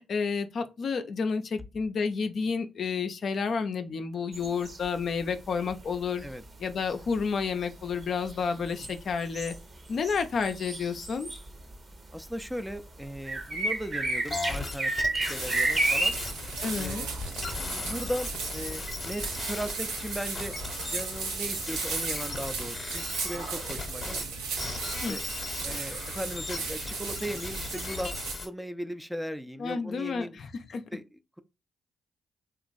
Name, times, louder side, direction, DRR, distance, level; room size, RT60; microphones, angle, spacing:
voice 1, 0.1-6.2 6.6-9.5 9.9-11.3 16.6-17.1 25.0-25.2 29.6-30.8, left 5 dB, 60° left, 0.4 m, -30 dB
sound 1, 4.3-5.4 5.6-11.9 12.2-18.9, right 2 dB, 45° right, 0.9 m, -32 dB
voice 2, 12.1-14.9 15.2-16.2 16.7-17.2 17.8-20.5 20.9-24.3 25.1-25.2 25.6-28.1 28.4-30.3 30.9-31.0, equal, 5° right, 0.4 m, -37 dB
sound 2, 14.2-24.3 24.6-28.5, left 3 dB, 40° left, 0.8 m, -37 dB
sound 3, 15.3-28.3, right 4 dB, 85° right, 0.5 m, -36 dB
2.9 x 2.4 x 2.5 m
hypercardioid pair, 45°, 0 cm